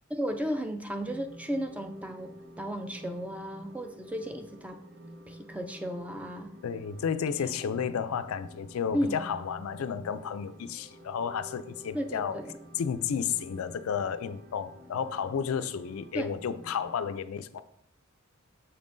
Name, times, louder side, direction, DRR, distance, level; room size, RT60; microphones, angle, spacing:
voice 1, 0.1-4.8 5.3-6.5 7.6-7.7 8.9-9.2 11.9-12.6 16.1-16.4, equal, 5° right, 6 dB, 0.4 m, -34 dB
sound 1, 1.0-16.9, right 1 dB, 80° right, 1.0 m, -50 dB
voice 2, 6.6-12.4 12.8-17.6, left 7 dB, 90° left, 13 dB, 0.4 m, -32 dB
6.6 x 5.4 x 2.6 m, 0.70 s
head